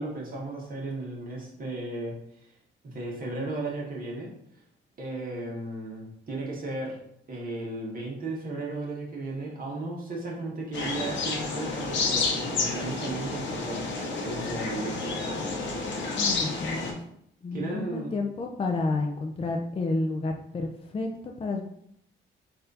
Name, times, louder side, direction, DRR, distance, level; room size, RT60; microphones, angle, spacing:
voice 1, 0.0-2.2 2.8-4.3 5.0-7.0 7.3-15.5 17.5-18.1, right 2 dB, 45° right, -4 dB, 1.5 m, -35 dB
sound 1, 10.7-16.9, left 4 dB, 70° left, 1.0 m, -30 dB
voice 2, 16.2-17.0 17.4-21.6, left 3 dB, 30° left, 2 dB, 0.5 m, -30 dB
4.1 x 2.7 x 4.0 m, 0.71 s
cardioid pair, 90°, 20 cm